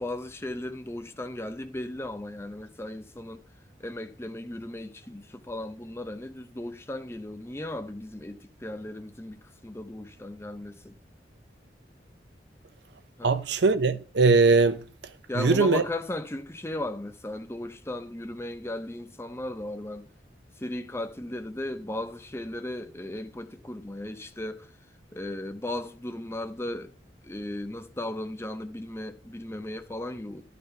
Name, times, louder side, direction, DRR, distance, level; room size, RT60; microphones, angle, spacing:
voice 1, 0.0-3.4 3.8-11.0 13.2-13.4 15.3-20.1 20.6-24.7 25.1-26.9 27.2-30.5, left 1 dB, 15° left, 0.6 m, -36 dB
voice 2, 13.2-14.8 15.4-15.8, right 4 dB, 70° right, 0.6 m, -21 dB
11.5 x 6.8 x 3.3 m
head